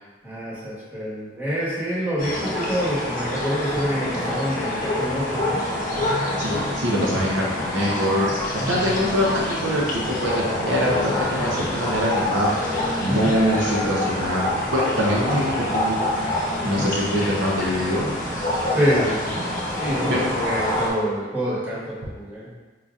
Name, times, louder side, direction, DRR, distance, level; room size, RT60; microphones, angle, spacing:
voice 1, 0.2-5.6 8.6-8.9 13.1-13.3 16.6-16.9 18.7-19.4 19.8-22.5, equal, 10° right, -9 dB, 1.0 m, -26 dB
sound 1, 2.2-20.9, left 1 dB, 45° left, 0.7 m, -26 dB
voice 2, 6.4-8.3 8.5-12.5 13.0-14.5 14.7-16.0 16.6-18.1 20.1-20.2, equal, 75° right, -4 dB, 0.7 m, -23 dB
4.7 x 2.7 x 2.4 m, 1.2 s
head